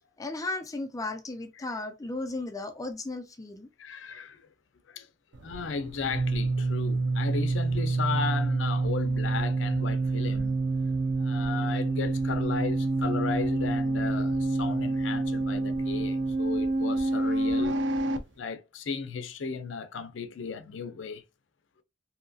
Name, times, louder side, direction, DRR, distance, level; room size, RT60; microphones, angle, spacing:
voice 1, 0.2-3.7, left 2 dB, 20° left, 0.4 m, -35 dB
voice 2, 3.8-4.5 4.9-5.1 5.4-10.6 11.2-17.8 18.4-21.2, left 5 dB, 85° left, 0.5 m, -35 dB
sound 1, 5.3-18.2, right 2 dB, 70° right, 0.5 m, -27 dB
2.7 x 2.6 x 2.2 m
head